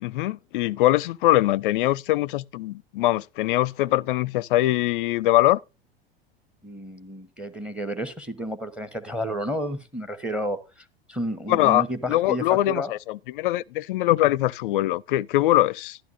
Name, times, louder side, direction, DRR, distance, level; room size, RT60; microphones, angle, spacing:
voice 1, 0.0-5.6 11.5-16.0, left 15 dB, 55° left, 0.4 m, -22 dB
voice 2, 6.6-10.6 11.1-12.9, equal, 5° right, 1.0 m, -31 dB
12.0 x 11.5 x 2.6 m
figure-of-eight pair, 85°, 31 cm